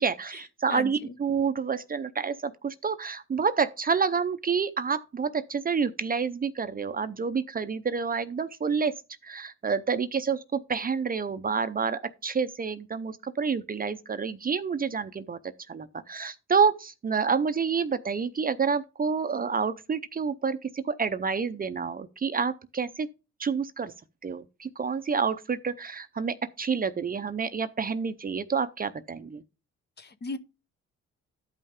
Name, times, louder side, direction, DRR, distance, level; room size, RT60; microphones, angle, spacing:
voice 1, 0.0-8.9 9.2-15.4 15.7-23.1 23.4-23.9 24.2-29.4, right 5 dB, 30° right, 0.6 m, -28 dB
voice 2, 0.7-1.1 30.0-30.4, left 3 dB, 35° left, 0.8 m, -37 dB
12.0 x 5.4 x 3.6 m
cardioid pair, 90°, 30 cm